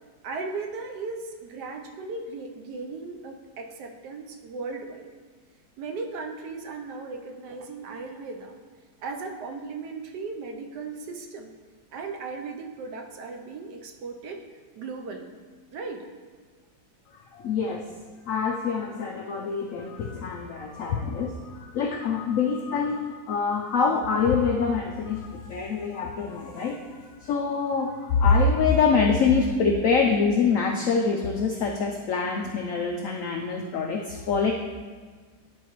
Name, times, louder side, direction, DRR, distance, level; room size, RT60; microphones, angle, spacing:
voice 1, 0.2-5.1 5.8-8.5 9.0-11.5 11.9-14.4 14.8-15.3 15.7-16.0, right 4 dB, 70° right, 3 dB, 1.2 m, -36 dB
voice 2, 17.3-17.9 18.3-26.8 27.2-34.5, left 5 dB, 80° left, 1 dB, 0.7 m, -25 dB
11.0 x 4.6 x 3.0 m, 1.5 s
omnidirectional pair, 2.0 m